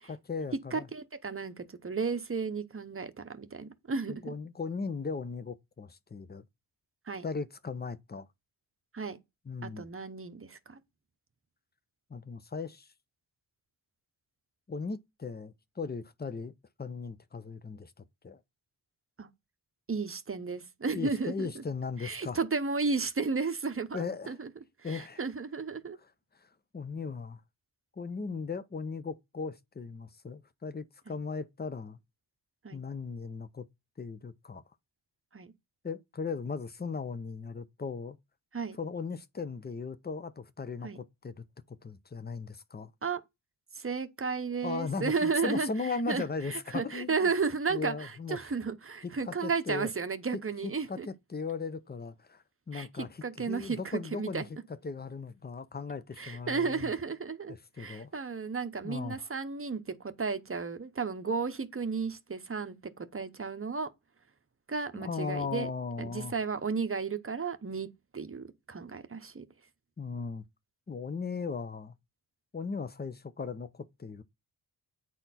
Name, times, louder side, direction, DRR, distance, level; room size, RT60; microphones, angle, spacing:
voice 1, 0.1-0.9 4.1-6.4 7.2-8.3 9.5-9.9 12.1-12.9 14.7-16.5 16.8-18.4 20.9-22.4 23.9-24.4 24.8-25.2 26.4-27.4 28.0-32.0 32.7-33.7 34.0-34.6 35.8-38.2 38.8-42.9 44.6-47.3 47.7-48.4 49.2-49.9 50.6-54.4 54.8-56.9 57.5-58.1 58.8-59.3 64.9-66.3 70.0-70.5 70.9-71.9 72.5-74.2, left 4 dB, 20° left, 0.6 m, -37 dB
voice 2, 0.7-4.3 7.1-7.2 8.9-9.2 9.6-10.8 19.2-19.3 19.9-21.6 22.0-24.5 24.8-26.0 31.1-31.2 32.6-32.8 35.3-35.5 38.5-38.8 40.8-41.0 43.0-43.2 43.7-45.7 46.1-51.1 52.7-52.9 53.2-54.4 56.2-63.9 64.7-65.7 66.0-67.9 68.1-69.4, right 4 dB, 30° right, 0.8 m, -33 dB
9.0 x 4.2 x 4.1 m
wide cardioid pair, 110°, 46 cm